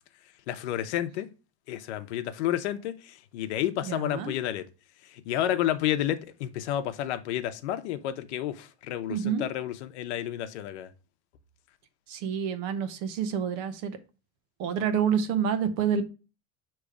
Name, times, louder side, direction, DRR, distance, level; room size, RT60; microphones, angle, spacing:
voice 1, 0.5-1.3 1.7-4.6 5.0-10.9, left 12 dB, 75° left, 0.9 m, -30 dB
voice 2, 3.8-4.3 9.1-9.4 12.1-14.0 14.6-16.0, right 7 dB, 45° right, 1.0 m, -28 dB
6.6 x 3.1 x 4.9 m
supercardioid pair, 160°, 34 cm